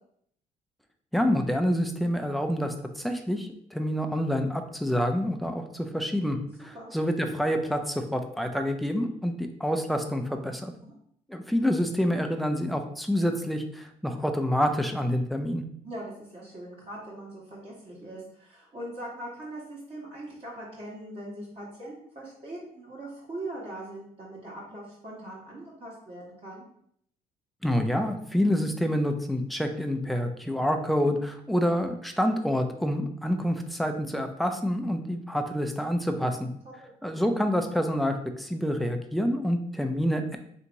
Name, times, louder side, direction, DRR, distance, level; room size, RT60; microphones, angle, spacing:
voice 1, 1.1-10.7 11.3-15.6 27.6-36.5 37.0-40.4, equal, ahead, 5 dB, 0.4 m, -27 dB
voice 2, 15.8-26.6 36.6-36.9, right 1 dB, 35° right, -7 dB, 1.4 m, -41 dB
3.4 x 2.9 x 3.9 m, 0.67 s
cardioid pair, 110°, 17 cm